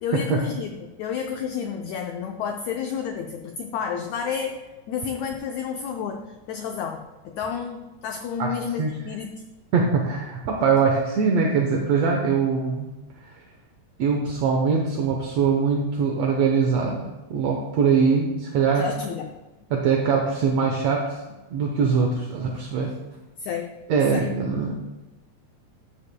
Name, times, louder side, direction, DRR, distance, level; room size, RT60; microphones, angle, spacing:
voice 1, 0.0-9.4 18.8-19.3 23.4-23.7 24.1-24.3, left 7 dB, 90° left, 4 dB, 1.6 m, -31 dB
voice 2, 9.7-12.9 14.0-18.9 19.7-21.2 21.5-22.9 23.9-24.8, right 5 dB, 70° right, 1 dB, 1.6 m, -22 dB
13.5 x 9.6 x 2.2 m, 1.1 s
omnidirectional pair, 4.0 m